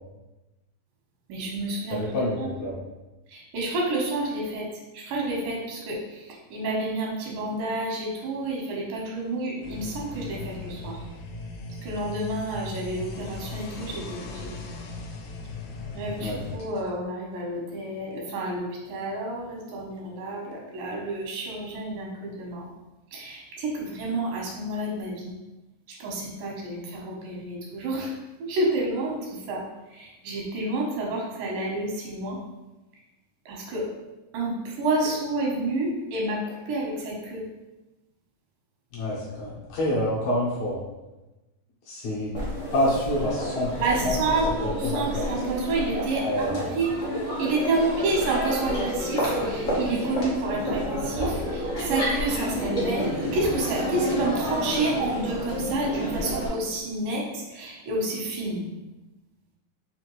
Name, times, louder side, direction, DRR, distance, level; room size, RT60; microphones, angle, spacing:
voice 1, 1.3-2.5 3.3-4.7 4.9-11.0 11.8-14.5 15.9-22.7 23.1-25.3 25.9-28.1 28.4-32.4 33.5-33.9 34.3-37.4 43.8-46.9 47.4-58.6, right 2 dB, 90° right, -2 dB, 2.7 m, -29 dB
voice 2, 1.9-2.8 16.2-16.4 38.9-40.8 41.9-42.3 42.7-43.7 44.0-44.2 44.6-45.2 46.2-46.7, left 1 dB, 70° left, -5 dB, 1.9 m, -27 dB
sound 1, 9.6-16.6, left 3 dB, 90° left, 2.2 m, -38 dB
Crowd, 42.3-56.5, equal, 50° left, 0.8 m, -29 dB
5.7 x 2.6 x 3.0 m, 1.1 s
omnidirectional pair, 3.8 m